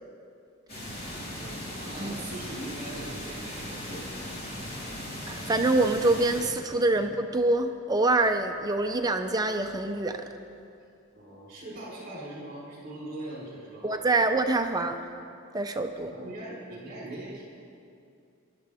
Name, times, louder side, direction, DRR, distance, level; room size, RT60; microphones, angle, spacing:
sound 1, 0.7-6.5, left 1 dB, 50° left, 3.8 m, -38 dB
voice 1, 1.3-4.1 6.9-7.0 11.1-14.3 16.0-17.4, right 1 dB, 50° right, -6 dB, 4.2 m, -41 dB
voice 2, 5.3-10.2 13.8-15.0 15.5-16.1, right 2 dB, 20° right, 6 dB, 0.5 m, -25 dB
23.5 x 12.0 x 3.5 m, 2.5 s
head